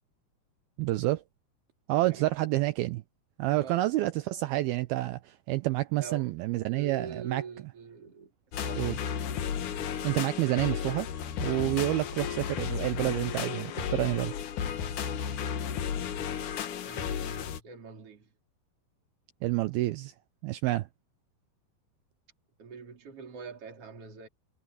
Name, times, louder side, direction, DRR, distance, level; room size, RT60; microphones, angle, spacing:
voice 1, 0.8-1.2 1.9-3.0 3.4-7.4 8.7-9.0 10.0-11.1 11.4-14.3 19.4-20.1 20.4-20.9, right 17 dB, 85° right, 2.2 m, -29 dB
voice 2, 1.9-2.2 3.5-3.8 6.0-6.3 6.7-8.3 8.6-9.0 16.8-18.3 22.6-24.3, right 5 dB, 35° right, 4.3 m, -44 dB
sound 1, 8.5-17.6, left 8 dB, 60° left, 2.3 m, -33 dB
omnidirectional pair, 5.0 m